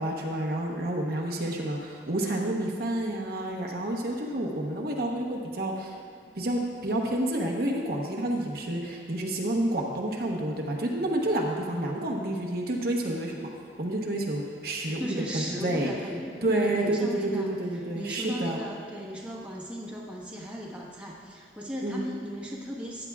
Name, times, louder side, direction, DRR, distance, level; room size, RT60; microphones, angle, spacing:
voice 1, 0.0-6.0 6.4-13.5 13.8-15.9 16.4-18.6 21.8-22.0, right 1 dB, 50° right, -1 dB, 1.0 m, -29 dB
voice 2, 15.0-17.5 17.9-23.1, equal, 5° right, -5 dB, 1.2 m, -36 dB
14.5 x 9.6 x 2.4 m, 2.5 s
head